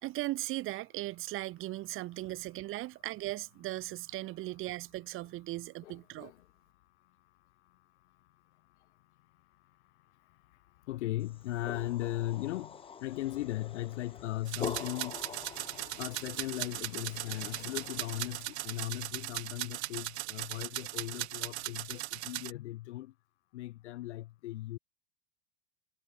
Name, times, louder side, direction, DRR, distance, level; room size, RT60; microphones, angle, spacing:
voice 1, 0.0-6.3, right 17 dB, 35° right, 1.2 m, -38 dB
voice 2, 5.8-6.4 10.9-15.2 16.0-23.1 23.5-24.8, left 16 dB, 70° left, 0.8 m, -38 dB
Aircraft, 9.0-9.1 9.4-20.7 21.0-21.1, left 27 dB, 55° left, 2.3 m, -57 dB
sound 1, 11.3-16.2, left 6 dB, 15° left, 1.1 m, -44 dB
sound 2, 14.5-22.5, right 18 dB, 65° right, 1.7 m, -39 dB
hypercardioid pair, 115°, 36 cm